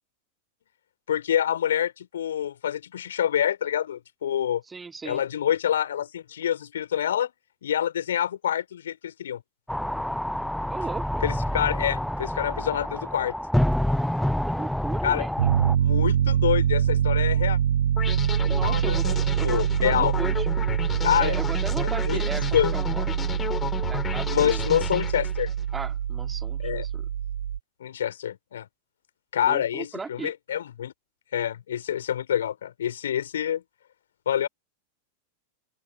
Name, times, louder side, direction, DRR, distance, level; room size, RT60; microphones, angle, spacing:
voice 1, 1.1-4.6 5.0-7.3 7.6-9.4 11.2-13.3 15.0-15.3 15.7-17.6 18.6-19.2 19.4-20.1 21.0-21.4 21.8-22.2 22.5-22.7 24.3-25.5 26.6-26.8 27.8-28.7 29.3-30.9 31.3-33.6 34.2-34.5, left 10 dB, 65° left, 3.3 m, -26 dB
voice 2, 4.7-5.2 10.7-11.2 14.5-15.4 18.5-20.5 21.2-22.5 22.7-23.1 23.9-24.6 25.7-27.1 29.4-30.3, right 4 dB, 15° right, 2.1 m, -37 dB
sound 1, 9.7-15.8, equal, ahead, 0.6 m, -27 dB
Piano, 15.4-27.6, right 9 dB, 65° right, 0.5 m, -25 dB
sound 2, 18.0-25.6, left 7 dB, 20° left, 5.7 m, -33 dB
open air
figure-of-eight pair, 90°, 0 cm